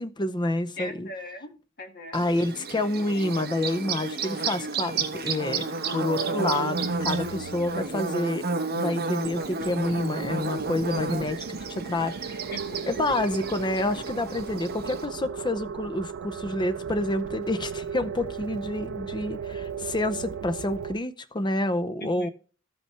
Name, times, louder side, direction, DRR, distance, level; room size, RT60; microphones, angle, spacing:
voice 1, 0.0-1.1 2.1-8.4 8.8-12.4 12.9-22.3, left 2 dB, 20° left, 0.6 m, -28 dB
voice 2, 0.8-1.5 1.8-2.2 12.5-13.0 22.0-22.3, left 1 dB, 50° left, 1.9 m, -39 dB
Bird / Buzz, 2.1-15.0, right 4 dB, 50° right, 1.1 m, -32 dB
sound 1, 5.5-8.2 9.2-21.0, right 6 dB, 65° right, 0.5 m, -36 dB
13.5 x 5.4 x 3.1 m
head